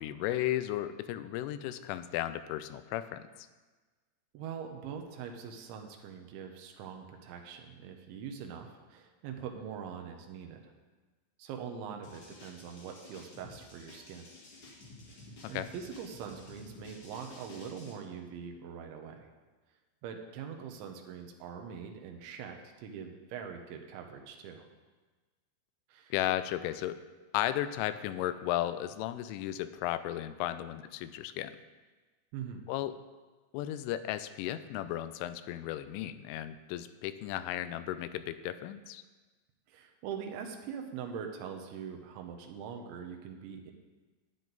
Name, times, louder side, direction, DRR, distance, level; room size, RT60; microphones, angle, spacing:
voice 1, 0.0-3.5 15.4-15.7 26.1-27.0 27.3-31.6 32.7-33.0 33.5-39.0, left 13 dB, 90° left, 12 dB, 3.1 m, -35 dB
voice 2, 4.3-10.7 11.4-14.3 15.1-15.2 15.5-19.3 20.0-24.7 25.9-26.1 32.3-32.6 39.7-43.7, right 7 dB, 80° right, 3 dB, 3.2 m, -43 dB
sound 1, 12.0-17.9, left 2 dB, 50° left, 1.7 m, -52 dB
12.0 x 9.6 x 4.0 m, 1.3 s
omnidirectional pair, 5.5 m